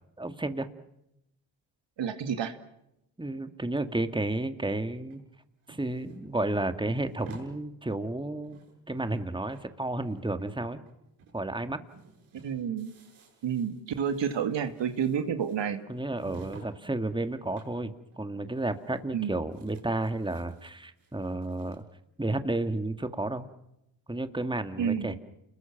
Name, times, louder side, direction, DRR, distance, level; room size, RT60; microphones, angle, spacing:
voice 1, 0.2-0.7 3.2-5.2 5.7-8.6 8.9-10.8 11.3-11.8 15.9-21.8 22.2-23.5 24.1-25.2, right 2 dB, 10° right, 9 dB, 2.2 m, -32 dB
voice 2, 2.0-2.6 12.4-12.9 13.4-15.8 19.1-19.3 24.8-25.1, right 7 dB, 65° right, 8 dB, 2.2 m, -29 dB
sound 1, 5.1-7.5 8.0-8.1 8.3-9.2 9.5-10.9 11.2-11.4 11.7-16.7 17.0-17.8 18.1-18.2 18.6-19.2 19.5-21.8, right 4 dB, 90° right, 7.2 m, -53 dB
29.5 x 21.5 x 6.0 m, 0.83 s
supercardioid pair, 50°, 47 cm